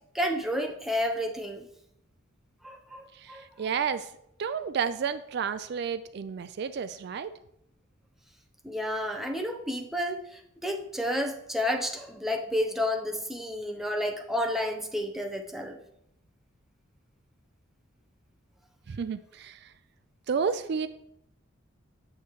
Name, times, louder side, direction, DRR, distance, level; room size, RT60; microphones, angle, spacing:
voice 1, 0.1-1.7 2.6-3.4 8.6-15.8, left 1 dB, ahead, 2 dB, 0.7 m, -31 dB
voice 2, 3.1-4.1 4.4-7.3 18.9-19.7 20.3-20.9, right 6 dB, 55° right, 13 dB, 0.3 m, -31 dB
8.5 x 6.9 x 3.1 m, 0.77 s
head